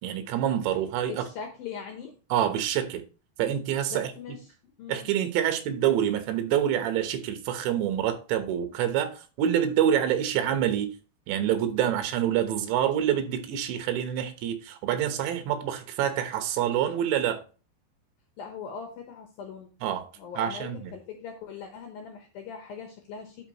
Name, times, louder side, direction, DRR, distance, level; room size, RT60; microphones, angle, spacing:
voice 1, 0.0-1.2 2.3-3.0 3.4-4.1 4.9-10.9 11.3-17.4 19.8-20.1 20.4-20.9, right 10 dB, 75° right, 3.2 m, -26 dB
voice 2, 1.1-2.1 3.9-5.1 18.4-19.7 20.2-23.5, left 6 dB, 75° left, 2.2 m, -41 dB
11.5 x 5.5 x 3.0 m
omnidirectional pair, 5.4 m